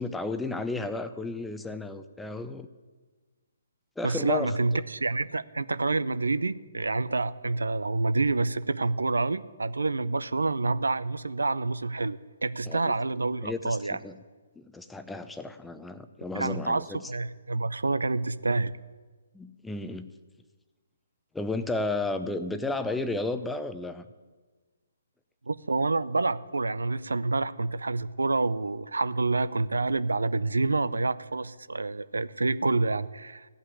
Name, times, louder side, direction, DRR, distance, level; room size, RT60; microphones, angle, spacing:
voice 1, 0.0-2.7 4.0-4.8 12.7-12.9 13.4-14.2 14.6-17.1 19.3-20.1 21.3-24.1, left 2 dB, 5° left, 10 dB, 0.6 m, -33 dB
voice 2, 4.0-14.0 16.3-18.7 25.5-33.5, right 3 dB, 90° right, 15 dB, 0.5 m, -28 dB
15.5 x 5.7 x 9.7 m, 1.4 s
hypercardioid pair, 145°, 0 cm